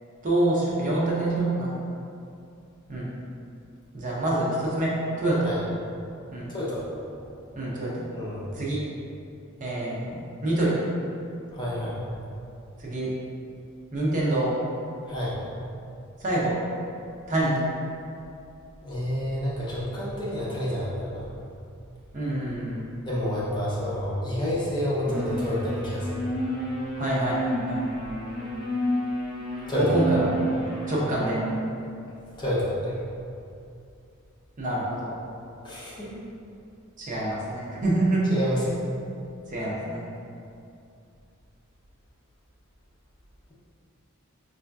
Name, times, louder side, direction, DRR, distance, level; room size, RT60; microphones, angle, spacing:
voice 1, 0.2-1.7 2.9-3.1 3.9-5.4 6.3-6.5 7.5-8.1 8.5-8.8 9.6-10.8 12.8-13.1 13.9-14.5 16.2-16.6 17.3-17.6 22.1-22.9 27.0-27.8 29.8-30.6 30.9-31.4 34.6-35.1 37.0-38.2 39.5-40.0, right 1 dB, 35° right, -6 dB, 0.6 m, -26 dB
voice 2, 6.5-6.9 8.1-8.5 11.5-12.0 15.1-15.3 18.8-21.3 23.0-26.2 29.7-30.0 30.7-30.9 32.4-33.0 35.6-36.1 38.3-38.8, equal, 20° left, -8 dB, 0.6 m, -29 dB
sound 1, 25.1-31.5, equal, ahead, 0.9 m, -30 dB
4.8 x 2.6 x 2.3 m, 2.5 s
head